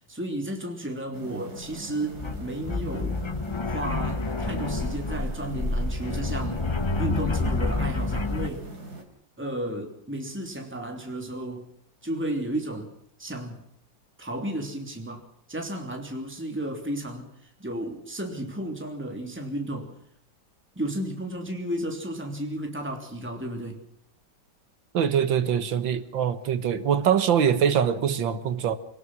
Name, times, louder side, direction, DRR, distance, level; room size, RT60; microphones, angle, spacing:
voice 1, 0.1-3.2 3.7-6.7 7.0-8.7 9.4-11.7 12.0-12.9 13.2-13.6 14.2-15.2 15.5-19.9 20.7-23.8, right 1 dB, 5° right, 3 dB, 3.2 m, -33 dB
sound 1, 1.1-9.0, right 2 dB, 55° right, 4.0 m, -41 dB
sound 2, 1.6-1.7 2.1-8.5, left 3 dB, 35° left, 0.4 m, -28 dB
voice 2, 24.9-28.8, right 8 dB, 90° right, 12 dB, 2.1 m, -23 dB
26.0 x 19.0 x 6.1 m, 0.67 s
omnidirectional pair, 2.0 m